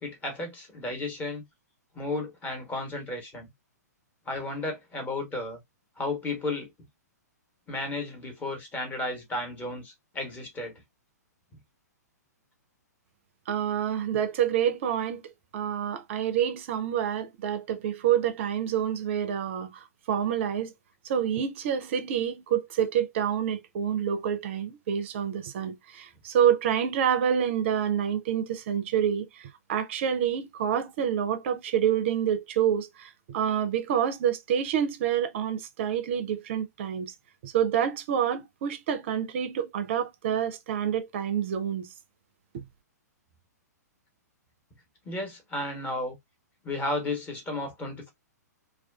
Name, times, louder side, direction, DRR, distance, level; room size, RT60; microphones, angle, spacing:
voice 1, 0.0-1.4 1.9-3.5 4.3-5.6 6.0-6.7 7.7-10.7 45.0-46.2 46.6-48.1, left 2 dB, 15° left, 1.0 m, -33 dB
voice 2, 13.5-15.2 15.5-20.7 21.0-37.1 37.4-41.9 42.5-42.6, right 9 dB, 45° right, 0.5 m, -27 dB
2.3 x 2.3 x 2.3 m
figure-of-eight pair, 115°, 9 cm